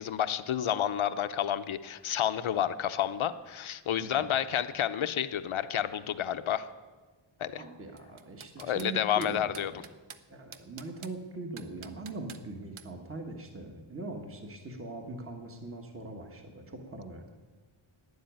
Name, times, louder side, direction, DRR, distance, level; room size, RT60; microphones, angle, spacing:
voice 1, 0.0-6.7 7.4-7.6 8.6-9.7, left 10 dB, 75° left, 11 dB, 0.7 m, -30 dB
voice 2, 7.5-9.8 10.3-17.3, right 2 dB, 25° right, 3 dB, 1.3 m, -41 dB
sound 1, 8.0-8.9 9.2-10.2 10.5-11.2 11.6-12.4 12.8-12.9, right 8 dB, 80° right, 0.8 m, -47 dB
12.0 x 9.6 x 9.0 m, 1.3 s
wide cardioid pair, 175°, 48 cm